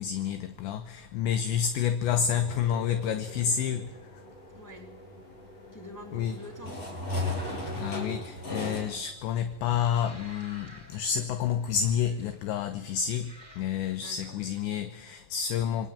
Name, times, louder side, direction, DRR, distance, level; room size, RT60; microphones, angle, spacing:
voice 1, 0.0-3.9 6.1-6.4 7.8-13.3 13.6-15.9, left 8 dB, 75° left, 2.9 m, -29 dB
elevator inside doors close go down eight floors doors open, 2.0-8.8, left 1 dB, 30° left, 7.3 m, -38 dB
voice 2, 4.5-4.9 5.7-6.9 14.0-14.4, left 1 dB, 10° left, 1.2 m, -46 dB
sound 1, 8.3-14.6, right 1 dB, 10° right, 4.0 m, -53 dB
27.0 x 20.5 x 8.7 m
omnidirectional pair, 5.9 m